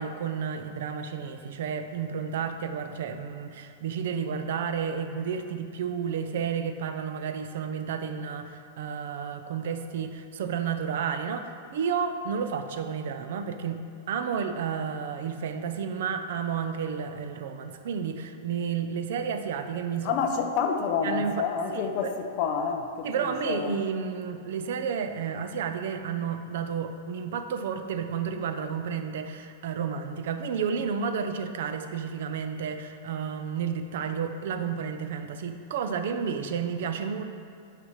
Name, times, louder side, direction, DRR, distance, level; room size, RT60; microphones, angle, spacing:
voice 1, 0.0-13.8 14.1-20.1 21.0-21.4 21.7-22.1 23.0-37.2, right 6 dB, 60° right, 8 dB, 0.5 m, -31 dB
voice 2, 20.0-23.8, left 6 dB, 35° left, 4 dB, 0.6 m, -29 dB
9.9 x 5.6 x 3.1 m, 2.5 s
supercardioid pair, 170°, 0 cm